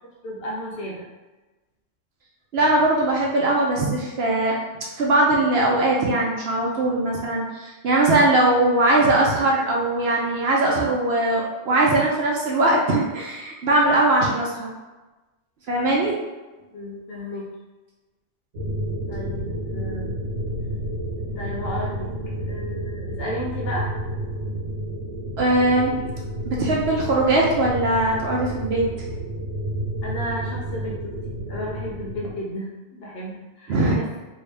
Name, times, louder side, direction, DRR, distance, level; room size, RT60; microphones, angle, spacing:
voice 1, 0.2-1.1 16.7-17.5 19.1-20.1 21.4-22.1 22.5-23.9 30.0-34.1, equal, 60° left, -3 dB, 0.8 m, -33 dB
voice 2, 2.5-4.6 5.0-14.7 15.7-16.2 25.4-26.0 26.5-28.8 33.7-33.9, right 2 dB, 60° right, -3 dB, 0.8 m, -20 dB
sound 1, 18.5-32.3, right 1 dB, 85° right, 1.2 m, -30 dB
2.7 x 2.7 x 3.3 m, 1.2 s
omnidirectional pair, 1.3 m